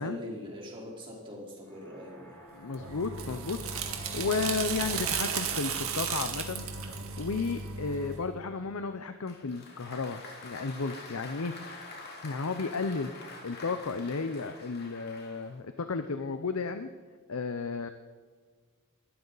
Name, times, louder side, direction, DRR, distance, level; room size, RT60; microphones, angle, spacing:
voice 1, 0.0-2.4, left 1 dB, 25° right, -3 dB, 3.7 m, -42 dB
sound 1, 1.6-9.5, left 1 dB, 10° left, 4.5 m, -54 dB
voice 2, 2.5-3.8 4.1-11.5 12.2-16.9 17.3-17.9, left 4 dB, 80° left, 9 dB, 0.7 m, -33 dB
sound 2, 2.7-8.2, right 6 dB, 75° right, 1.8 m, -34 dB
Applause, 9.3-15.6, left 3 dB, 45° left, 2.6 m, -46 dB
21.0 x 12.5 x 4.0 m, 1.5 s
head